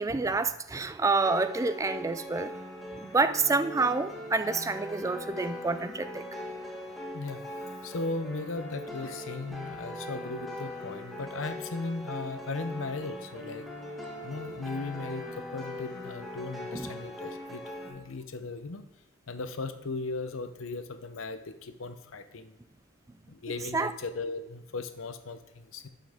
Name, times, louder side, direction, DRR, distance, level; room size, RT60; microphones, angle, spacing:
voice 1, 0.0-2.5 3.0-6.2 16.7-16.9 23.7-23.9, right 3 dB, 15° right, 12 dB, 0.3 m, -28 dB
sound 1, 1.2-17.9, left 1 dB, ahead, 1.6 m, -40 dB
voice 2, 7.1-7.4 7.8-13.7 14.2-18.9 19.3-22.6 23.3-25.9, left 3 dB, 80° left, 10 dB, 0.7 m, -37 dB
11.5 x 5.7 x 3.5 m, 0.89 s
head